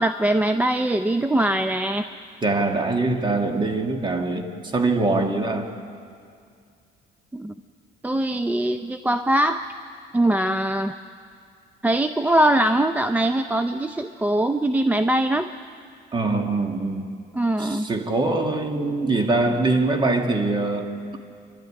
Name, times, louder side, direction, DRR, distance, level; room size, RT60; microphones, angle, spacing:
voice 1, 0.0-2.1 7.3-7.5 8.0-9.6 10.1-11.0 11.8-15.5 17.3-17.9 19.0-19.1, right 1 dB, 10° right, 9 dB, 0.5 m, -22 dB
voice 2, 2.4-5.7 16.1-17.1 17.6-21.2, right 2 dB, 25° right, 4 dB, 2.1 m, -23 dB
26.5 x 12.0 x 9.8 m, 2.3 s
cardioid pair, 110°, 17 cm